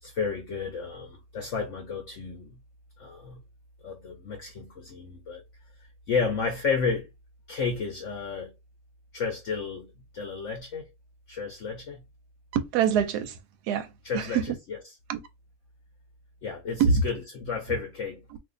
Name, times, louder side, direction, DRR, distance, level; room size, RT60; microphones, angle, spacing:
voice 1, 0.0-2.6 3.0-3.4 3.8-5.4 6.1-7.1 7.5-8.5 9.1-9.9 10.1-10.9 11.3-12.0 14.0-14.4 16.4-18.2, left 5 dB, 60° left, 0.8 m, -32 dB
voice 2, 12.5-13.4 13.7-14.5 15.1-15.2 16.8-17.0 18.3-18.4, right 6 dB, 75° right, 1.0 m, -25 dB
2.6 x 2.6 x 3.7 m
omnidirectional pair, 1.9 m